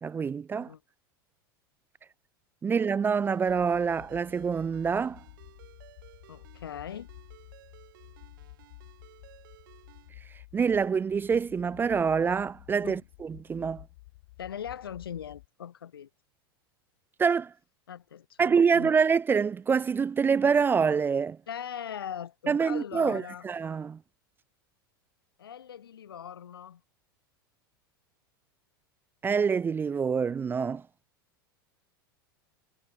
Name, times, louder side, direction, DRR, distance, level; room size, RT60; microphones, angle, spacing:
voice 1, 0.0-0.7 2.6-5.2 10.5-13.8 17.2-17.5 18.4-21.4 22.5-24.0 29.2-30.8, right 6 dB, 15° right, 0.4 m, -26 dB
Ringtone, 3.2-10.1, right 16 dB, 60° right, 2.8 m, -57 dB
sound 1, 3.5-15.5, left 21 dB, 60° left, 3.3 m, -52 dB
voice 2, 6.3-7.1 12.8-13.0 14.4-16.1 17.9-18.9 21.5-23.5 25.4-26.8, left 9 dB, 75° left, 1.0 m, -40 dB
figure-of-eight pair, 85°, 12 cm